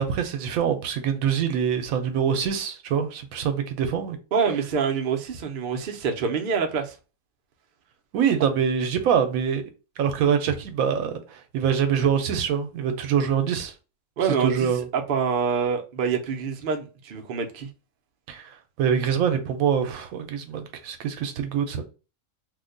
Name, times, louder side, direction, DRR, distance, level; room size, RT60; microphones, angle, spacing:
voice 1, 0.0-4.2 8.1-9.6 10.0-13.7 14.4-14.9 18.3-21.8, right 7 dB, 80° right, 1.0 m, -24 dB
voice 2, 4.3-6.9 14.2-17.7, right 6 dB, 60° right, 0.6 m, -26 dB
2.7 x 2.1 x 3.7 m
omnidirectional pair, 1.5 m